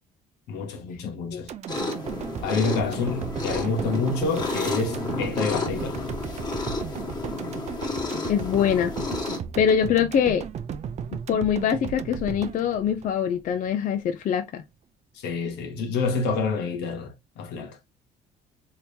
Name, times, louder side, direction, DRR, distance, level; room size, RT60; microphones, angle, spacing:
voice 1, 0.5-1.5 2.4-6.0 15.1-17.8, left 4 dB, 85° left, 1.1 m, -28 dB
sound 1, 1.5-13.7 14.1-14.2, right 7 dB, 40° right, 0.4 m, -36 dB
sound 2, 1.7-9.4, left 3 dB, 25° left, 1.4 m, -31 dB
voice 2, 8.3-8.9 9.6-10.4 11.3-14.6, left 8 dB, 50° left, 0.5 m, -23 dB
3.4 x 2.8 x 2.7 m
cardioid pair, 110°, 17 cm